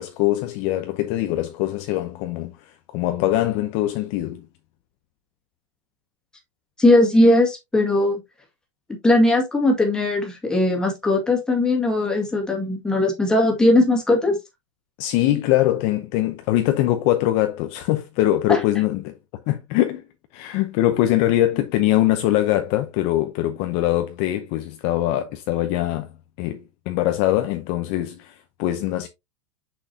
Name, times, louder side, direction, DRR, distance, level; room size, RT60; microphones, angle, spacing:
voice 1, 0.0-4.5 15.0-19.1 19.5-20.0 20.3-26.1 26.4-29.1, left 14 dB, 35° left, 0.7 m, -22 dB
voice 2, 6.8-8.2 9.0-14.4 18.5-18.6, left 1 dB, 5° left, 2.0 m, -19 dB
6.3 x 6.3 x 2.8 m
supercardioid pair, 160°, 17 cm